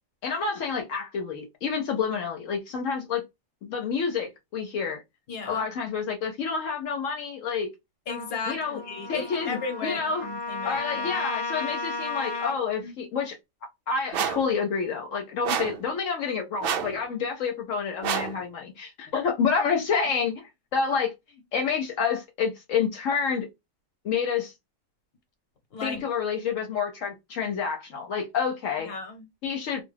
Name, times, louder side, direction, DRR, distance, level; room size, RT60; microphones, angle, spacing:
voice 1, 0.2-3.2 3.6-5.0 5.5-7.7 8.5-8.8 9.1-10.3 10.6-13.4 13.9-21.1 21.5-23.5 24.0-24.5 25.8-28.9 29.4-29.9, left 6 dB, 75° left, 1.0 m, -28 dB
voice 2, 5.3-5.7 8.1-11.2 12.8-12.9 15.4-15.5 25.7-26.0 28.9-29.3, left 4 dB, 50° left, 1.1 m, -35 dB
Trumpet, 8.1-12.6, left 3 dB, 35° left, 0.4 m, -34 dB
sound 1, 14.1-14.5 15.4-15.8 16.6-17.0 18.0-18.4, right 8 dB, 65° right, 0.6 m, -28 dB
2.5 x 2.3 x 3.2 m
omnidirectional pair, 1.4 m